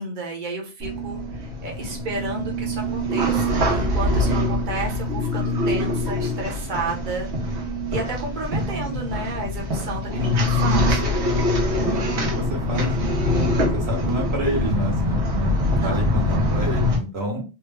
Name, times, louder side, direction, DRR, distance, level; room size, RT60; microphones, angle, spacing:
voice 1, 0.0-7.3 7.9-10.3 10.6-11.0 15.5-16.0, right 2 dB, 45° right, 0 dB, 1.1 m, -31 dB
sound 1, 0.8-17.0, left 1 dB, 80° right, 1.4 m, -24 dB
voice 2, 8.7-9.1 10.1-11.1 11.8-17.4, right 1 dB, 65° right, 0 dB, 1.1 m, -29 dB
3.4 x 2.2 x 3.3 m, 0.31 s
omnidirectional pair, 1.1 m